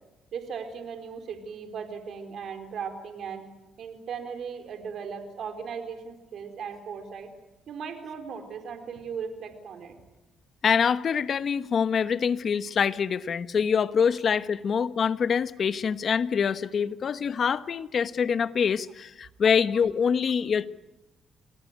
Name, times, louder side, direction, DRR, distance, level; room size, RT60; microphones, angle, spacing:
voice 1, 0.3-3.4 3.8-7.3 7.7-9.9 14.2-14.3, right 6 dB, 65° right, 4.5 m, -37 dB
voice 2, 10.6-20.7, left 6 dB, 50° left, 1.1 m, -25 dB
28.0 x 19.5 x 9.6 m
cardioid pair, 90°, 0 cm